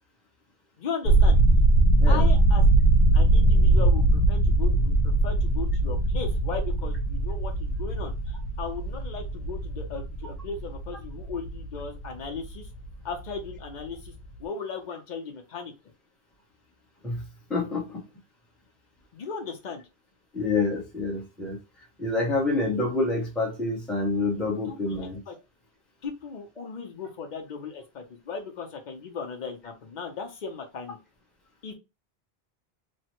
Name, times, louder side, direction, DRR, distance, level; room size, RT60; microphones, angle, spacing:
voice 1, 0.8-1.4 2.1-2.6 3.1-12.7 13.0-14.1 14.4-15.7 19.1-19.8 24.4-25.3 26.0-31.0 31.6-31.7, left 5 dB, 50° left, 0.8 m, -37 dB
sound 1, 1.1-12.9 13.2-13.6 13.9-14.1, right 2 dB, 80° left, 1.0 m, -22 dB
voice 2, 2.0-2.3 17.0-17.2 17.5-18.0 20.3-21.6 22.0-25.2, left 3 dB, ahead, 0.7 m, -27 dB
3.1 x 2.1 x 2.9 m
omnidirectional pair, 1.1 m